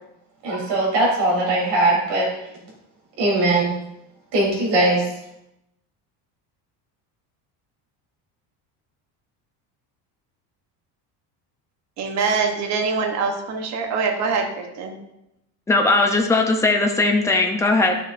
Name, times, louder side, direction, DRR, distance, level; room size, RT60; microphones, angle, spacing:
voice 1, 0.4-2.3 3.2-3.7 4.3-5.0, right 2 dB, 70° right, 3.3 m, -20 dB
voice 2, 12.0-14.9, right 4 dB, 40° right, 1.0 m, -24 dB
voice 3, 15.7-18.0, left 2 dB, 5° left, 0.4 m, -18 dB
11.5 x 6.6 x 2.5 m
cardioid pair, 180°, 44 cm